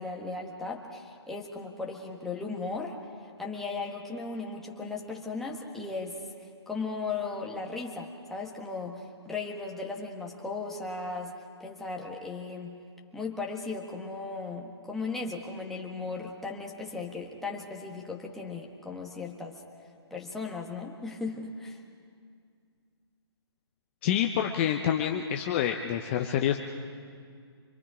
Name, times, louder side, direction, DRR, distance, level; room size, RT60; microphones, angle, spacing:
voice 1, 0.0-3.0 3.4-6.2 6.7-11.3 11.6-12.8 13.1-19.6 20.1-21.8, left 3 dB, ahead, -2 dB, 1.5 m, -36 dB
voice 2, 24.0-26.6, left 10 dB, 25° left, 3 dB, 0.7 m, -27 dB
25.5 x 23.0 x 5.0 m, 2.2 s
hypercardioid pair, 155°, 14 cm